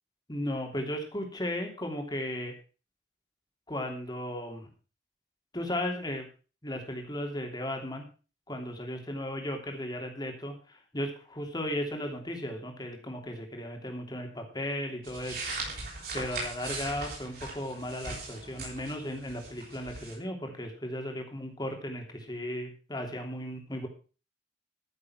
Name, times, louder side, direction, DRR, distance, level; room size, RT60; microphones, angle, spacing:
voice 1, 0.3-2.5 3.7-4.7 5.5-6.3 6.6-8.1 8.5-15.4 16.1-23.9, left 1 dB, 25° left, 3 dB, 3.0 m, -35 dB
sound 1, 15.0-20.1, right 3 dB, 55° right, 6.5 m, -39 dB
14.0 x 7.5 x 6.1 m, 0.36 s
head